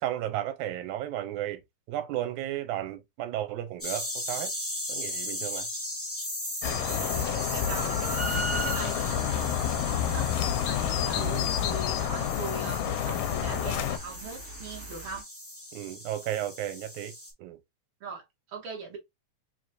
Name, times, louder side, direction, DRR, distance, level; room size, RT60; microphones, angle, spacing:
voice 1, 0.0-1.6 1.9-4.5 4.9-5.7 11.1-11.5 15.7-17.1 17.4-17.6, right 13 dB, 90° right, 2.2 m, -34 dB
sound 1, 3.8-17.3, left 1 dB, 15° left, 0.4 m, -37 dB
sound 2, 6.6-14.0, left 10 dB, 75° left, 1.5 m, -29 dB
voice 2, 6.6-15.3 18.0-19.0, right 4 dB, 50° right, 2.1 m, -41 dB
sound 3, 7.6-15.2, right 2 dB, 30° right, 2.1 m, -40 dB
5.2 x 3.2 x 2.6 m
omnidirectional pair, 3.3 m